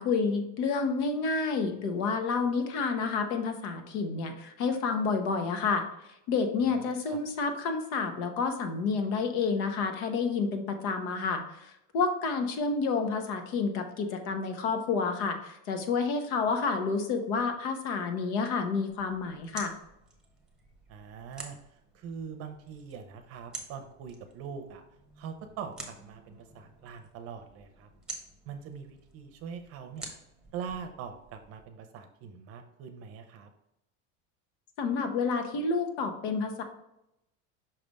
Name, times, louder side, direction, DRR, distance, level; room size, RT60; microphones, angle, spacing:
voice 1, 0.0-5.8 6.3-19.7 34.8-36.6, left 4 dB, 75° left, 6 dB, 1.1 m, -29 dB
voice 2, 6.9-7.2 20.9-24.8 25.2-27.9 28.5-30.1 30.5-33.5, right 6 dB, 45° right, 7 dB, 0.6 m, -43 dB
sound 1, 18.9-31.7, right 2 dB, ahead, 1.0 m, -49 dB
5.8 x 3.4 x 5.2 m, 0.85 s
cardioid pair, 160°, 34 cm